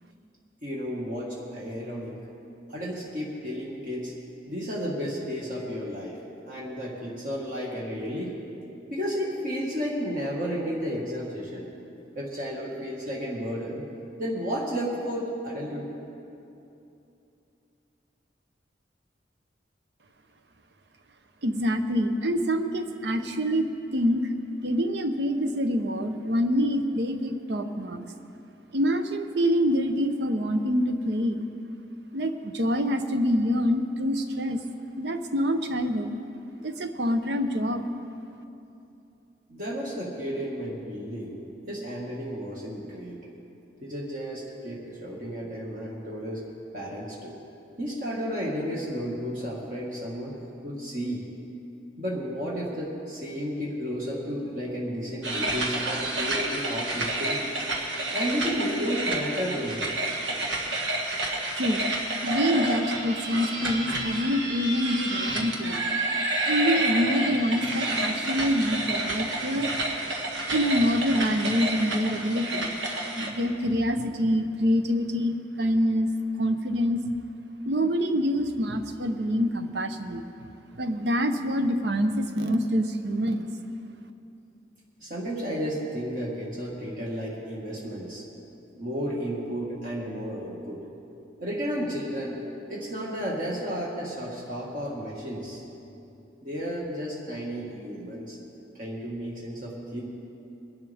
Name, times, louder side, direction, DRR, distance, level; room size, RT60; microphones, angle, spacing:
voice 1, 0.6-2.1 2.7-4.1 4.5-6.2 6.5-8.4 8.9-11.7 12.2-13.9 14.2-15.9 39.5-43.2 43.8-46.4 46.7-47.4 47.8-50.4 50.6-51.2 52.0-57.4 58.1-59.8 85.0-88.2 88.8-90.8 91.4-92.4 92.7-95.6 96.4-98.4 98.8-100.0, equal, 45° right, -4 dB, 1.8 m, -32 dB
voice 2, 21.4-24.3 24.6-28.0 28.7-31.5 32.1-34.6 35.0-36.2 36.6-37.9 61.6-61.8 62.2-65.9 66.5-69.7 70.5-72.7 73.2-76.1 76.4-77.0 77.7-80.2 80.8-83.5, equal, 65° right, 8 dB, 0.8 m, -26 dB
sound 1, 55.2-73.3, right 2 dB, 85° right, 1.7 m, -29 dB
21.5 x 11.5 x 3.5 m, 2.8 s
head